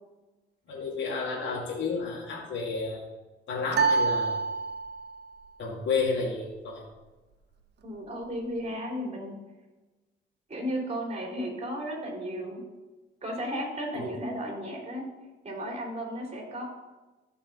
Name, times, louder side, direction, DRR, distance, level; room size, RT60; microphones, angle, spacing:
voice 1, 0.7-3.0 3.5-4.4 5.6-6.8 13.9-14.1, left 4 dB, 70° left, -4 dB, 2.6 m, -31 dB
sound 1, 3.7-5.2, right 4 dB, 55° right, 0.9 m, -26 dB
voice 2, 7.8-9.4 10.5-12.6 13.2-15.1 15.4-16.6, equal, 35° right, -1 dB, 3.7 m, -34 dB
13.5 x 5.6 x 4.1 m, 1.1 s
cardioid pair, 90°, 20 cm